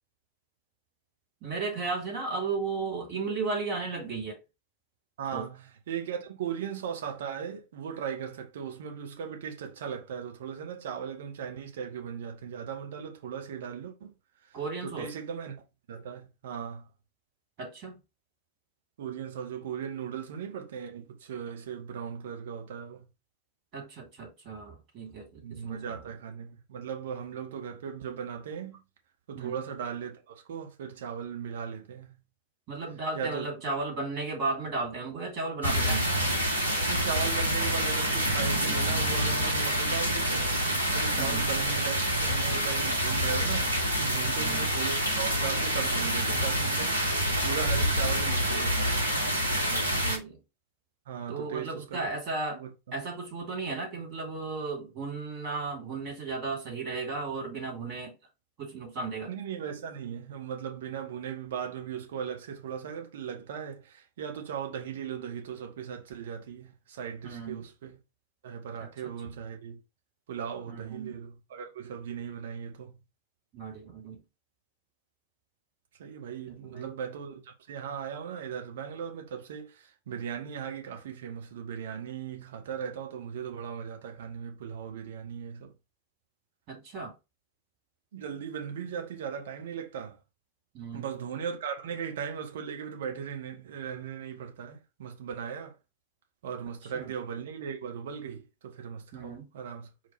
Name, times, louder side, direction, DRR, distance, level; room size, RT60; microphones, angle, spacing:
voice 1, 1.4-4.4 5.3-5.5 14.5-15.1 17.6-18.0 23.7-25.8 29.4-29.6 32.7-36.1 41.2-41.5 44.3-44.7 49.7-50.4 51.3-52.6 52.9-58.1 58.6-59.3 67.2-67.6 68.8-68.9 70.7-71.2 73.5-74.2 76.5-76.9 86.7-87.1 90.7-91.1 96.9-97.1 99.1-99.5, right 3 dB, 40° right, 2.2 m, -35 dB
voice 2, 5.2-14.1 14.4-16.9 19.0-23.1 25.4-28.8 29.3-32.2 33.1-33.5 36.9-40.5 40.9-43.7 44.0-49.1 51.1-52.1 52.5-53.0 59.3-68.0 68.4-69.8 70.3-73.0 76.0-85.7 88.1-90.2 90.9-95.8 96.4-99.9, right 7 dB, 60° right, 1.2 m, -38 dB
sound 1, 35.6-50.2, equal, 85° right, 1.0 m, -27 dB
4.5 x 2.4 x 4.5 m
figure-of-eight pair, 90°, 0 cm